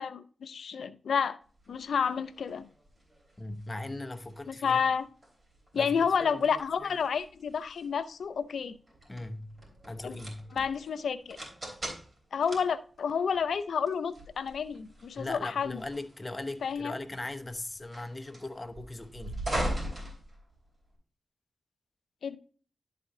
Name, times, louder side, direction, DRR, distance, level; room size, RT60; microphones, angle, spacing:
voice 1, 0.0-1.4 1.7-2.7 4.5-5.1 5.7-8.7 10.0-10.2 10.6-11.4 12.3-15.7 16.6-16.9 22.2-22.4, left 6 dB, 85° left, 0.5 m, -30 dB
sound 1, 1.6-21.0, right 1 dB, 40° right, 3.5 m, -42 dB
voice 2, 3.4-4.8 5.7-6.9 9.1-9.6 9.9-10.5 15.2-19.4, left 2 dB, 25° left, 0.8 m, -39 dB
11.0 x 4.2 x 3.7 m
cardioid pair, 50°, 0 cm